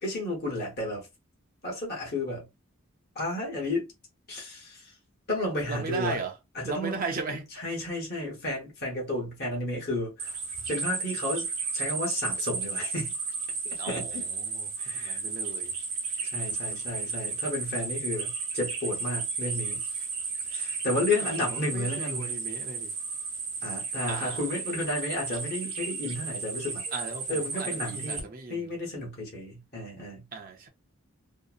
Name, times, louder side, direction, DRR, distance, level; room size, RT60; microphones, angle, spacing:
voice 1, 0.0-1.1 1.6-2.5 3.1-3.9 4.3-4.9 5.3-6.2 6.5-7.0 7.6-10.4 10.7-11.5 11.7-13.1 13.9-14.2 14.8-15.2 16.3-19.8 20.5-22.3 23.6-26.8 27.3-30.2, left 1 dB, 45° left, 1.0 m, -32 dB
voice 2, 5.7-6.3 6.6-7.5 13.8-15.8 21.4-22.9 24.1-24.4 26.1-26.2 26.9-28.7 30.3-30.7, right 4 dB, 40° right, 0.6 m, -37 dB
sound 1, 10.2-28.2, right 4 dB, 70° right, 0.9 m, -33 dB
2.7 x 2.0 x 2.4 m
head